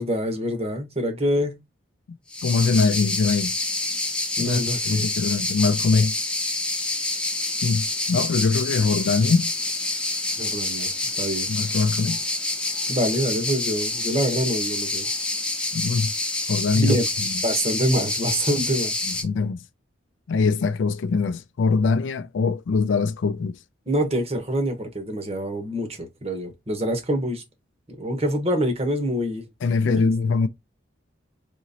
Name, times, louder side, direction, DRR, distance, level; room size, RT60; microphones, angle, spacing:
voice 1, 0.0-1.6 4.4-5.1 10.4-10.9 11.2-11.6 12.9-15.1 16.7-17.1 17.4-18.9 23.9-27.4 27.9-29.5 29.8-30.1, equal, 30° right, 1.0 m, -25 dB
sound 1, 2.3-19.2, left 2 dB, 5° left, 0.6 m, -27 dB
voice 2, 2.4-3.5 4.4-4.6 4.9-6.3 7.6-9.5 11.5-12.2 15.7-16.1 16.5-17.4 19.0-19.6 20.3-23.6 29.6-30.5, left 4 dB, 75° left, 0.3 m, -22 dB
3.7 x 3.0 x 2.7 m
head